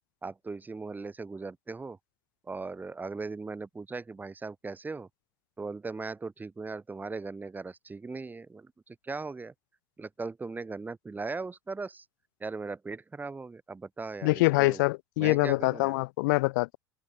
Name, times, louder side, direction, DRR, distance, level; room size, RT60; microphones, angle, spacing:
voice 1, 0.2-2.0 2.4-5.1 5.6-9.5 10.0-12.0 12.4-14.8 15.2-16.0, right 3 dB, 15° right, 6.1 m, -38 dB
voice 2, 14.2-16.8, left 24 dB, 55° left, 2.7 m, -25 dB
open air
figure-of-eight pair, 75°, 12 cm